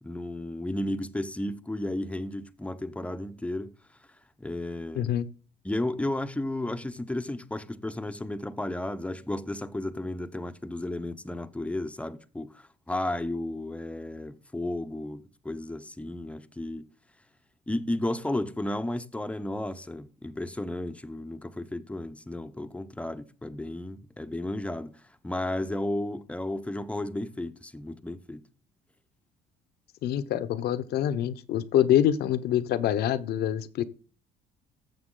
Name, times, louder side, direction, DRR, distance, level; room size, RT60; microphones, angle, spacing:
voice 1, 0.0-3.8 4.4-5.1 5.6-16.9 17.7-28.5, left 1 dB, 5° left, 0.8 m, -33 dB
voice 2, 4.9-5.3 30.0-33.8, left 10 dB, 70° left, 0.9 m, -25 dB
14.5 x 7.0 x 3.8 m
cardioid pair, 110°, 17 cm